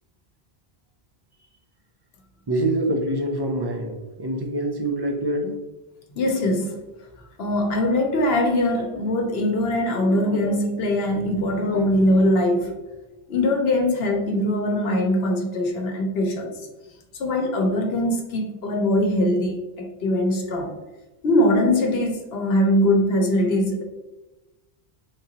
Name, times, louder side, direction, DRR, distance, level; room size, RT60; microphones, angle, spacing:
voice 1, 2.5-5.6, right 1 dB, 40° right, 3 dB, 0.4 m, -25 dB
voice 2, 6.1-6.8 7.4-12.7 13.3-16.5 17.2-20.7 21.2-23.8, left 1 dB, 75° left, 3 dB, 1.0 m, -22 dB
3.7 x 3.6 x 2.9 m, 1.1 s
omnidirectional pair, 1.0 m